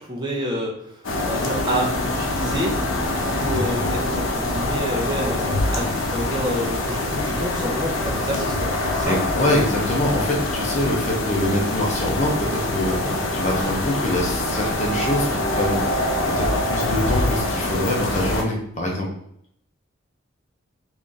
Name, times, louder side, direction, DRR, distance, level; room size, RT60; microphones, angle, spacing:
voice 1, 0.0-2.8 3.3-9.2 13.0-13.2, equal, 20° right, -3 dB, 0.6 m, -28 dB
sound 1, 1.0-18.4, left 1 dB, 85° left, 0.7 m, -24 dB
voice 2, 9.0-16.1 16.3-19.1, left 1 dB, 35° left, -1 dB, 0.8 m, -24 dB
3.1 x 2.6 x 3.7 m, 0.70 s
head